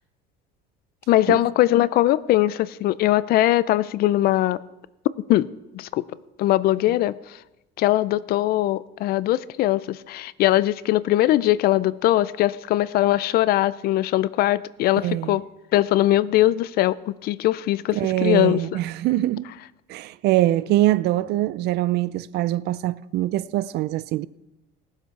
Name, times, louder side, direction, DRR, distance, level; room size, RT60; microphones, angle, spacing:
voice 1, 1.1-4.6 5.3-5.5 5.7-6.1 6.4-7.4 7.8-15.4 15.7-18.6, left 15 dB, 50° left, 0.4 m, -21 dB
voice 2, 15.0-15.4 17.9-19.5 19.9-24.3, right 15 dB, 55° right, 0.4 m, -23 dB
18.5 x 7.4 x 4.6 m
cardioid pair, 145°, 20 cm